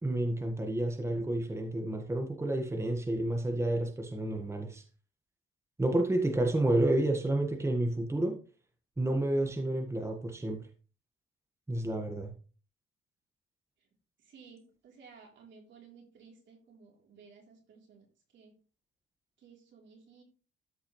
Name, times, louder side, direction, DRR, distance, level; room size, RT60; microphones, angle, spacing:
voice 1, 0.0-4.8 5.8-8.4 9.0-10.6 11.7-12.3, right 1 dB, 15° right, 4 dB, 1.5 m, -30 dB
voice 2, 14.2-18.1 18.3-18.5 19.4-20.2, right 5 dB, 70° right, 0 dB, 3.4 m, -56 dB
13.5 x 4.7 x 3.1 m, 0.37 s
cardioid pair, 90°, 20 cm